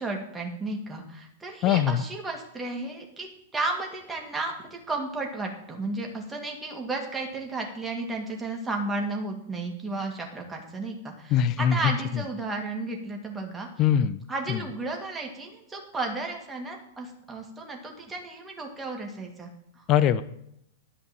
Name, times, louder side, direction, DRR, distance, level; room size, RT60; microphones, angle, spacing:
voice 1, 0.0-3.3 3.5-13.7 14.3-19.5 19.8-19.9, right 2 dB, 10° right, 1 dB, 2.4 m, -33 dB
voice 2, 1.6-2.0 11.3-11.9 13.8-14.2 14.5-14.6 19.9-20.2, left 9 dB, 35° left, 15 dB, 0.5 m, -22 dB
11.0 x 5.3 x 7.6 m, 0.76 s
figure-of-eight pair, 100°, 0 cm